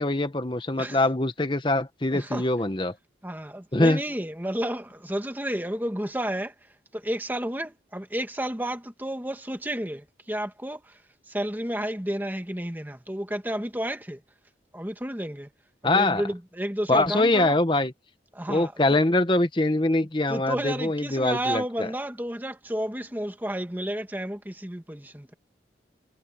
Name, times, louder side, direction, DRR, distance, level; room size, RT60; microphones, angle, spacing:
voice 1, 0.0-2.9 3.7-4.0 15.8-16.2 16.9-17.9 18.5-21.9, left 2 dB, 25° left, 1.1 m, -23 dB
voice 2, 2.1-2.4 3.2-6.5 6.9-10.8 11.3-14.2 14.7-15.5 15.8-17.5 18.3-19.0 20.3-25.3, right 1 dB, 10° right, 1.6 m, -31 dB
head